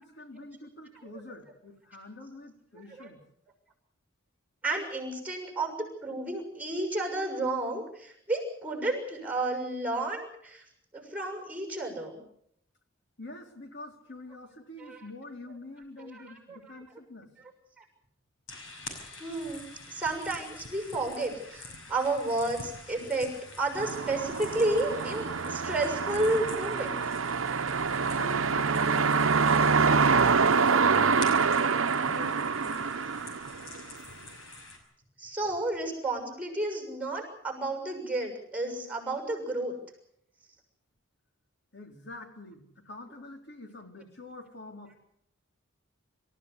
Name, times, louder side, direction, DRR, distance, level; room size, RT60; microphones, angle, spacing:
voice 1, 0.0-3.2 13.2-17.3 28.1-31.5 32.0-32.9 41.7-44.9, left 1 dB, 55° left, 4 dB, 3.9 m, -45 dB
voice 2, 4.6-10.6 10.9-12.2 14.8-15.0 16.0-16.8 17.8-17.9 19.2-27.0 35.2-39.7, right 2 dB, 5° right, 4 dB, 6.7 m, -32 dB
sound 1, 18.5-34.8, left 2 dB, 85° left, 6.0 m, -46 dB
sound 2, 23.8-34.0, right 5 dB, 85° right, 0.9 m, -26 dB
27.0 x 15.0 x 8.3 m, 0.72 s
head